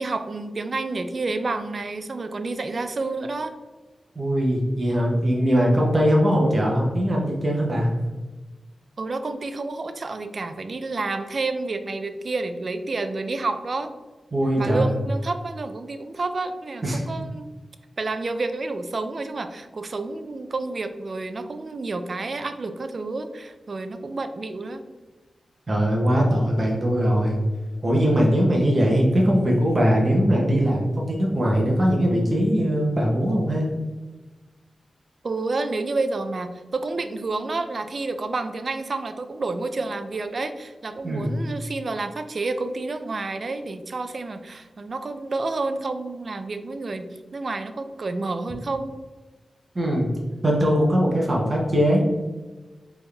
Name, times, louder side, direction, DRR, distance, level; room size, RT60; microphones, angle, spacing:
voice 1, 0.0-3.5 9.0-13.9 14.6-17.5 18.0-24.8 35.2-48.9, right 3 dB, 50° right, 9 dB, 0.4 m, -29 dB
voice 2, 4.1-7.9 14.3-14.9 16.8-17.0 25.7-27.4 27.8-33.7 41.0-41.4 49.7-50.1 50.4-52.0, equal, 35° right, -2 dB, 0.9 m, -21 dB
4.3 x 3.4 x 3.3 m, 1.2 s
wide cardioid pair, 80°, 0 cm